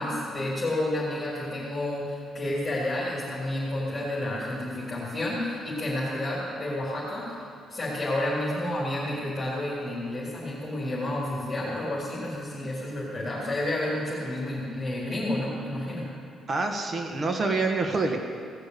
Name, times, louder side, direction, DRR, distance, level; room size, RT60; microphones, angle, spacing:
voice 1, 0.0-7.4 7.7-16.1, left 1 dB, 25° left, -8 dB, 4.0 m, -30 dB
voice 2, 16.5-18.2, right 3 dB, 40° right, 4 dB, 1.4 m, -26 dB
17.5 x 6.6 x 8.4 m, 2.3 s
cardioid pair, 90°, 0 cm